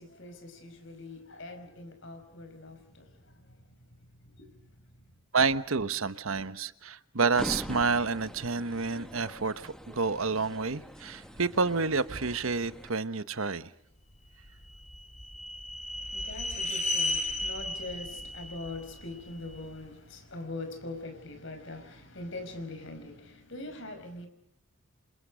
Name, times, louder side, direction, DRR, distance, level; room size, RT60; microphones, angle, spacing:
voice 1, 0.0-3.9 4.2-4.6 5.1-5.2 15.9-24.3, left 2 dB, 60° left, 5.4 m, -43 dB
voice 2, 5.3-13.7, right 4 dB, 80° right, 1.2 m, -29 dB
sound 1, 7.3-12.9, equal, 5° left, 1.0 m, -43 dB
sound 2, 14.4-19.6, left 1 dB, 35° left, 3.4 m, -34 dB
28.5 x 27.5 x 5.1 m
head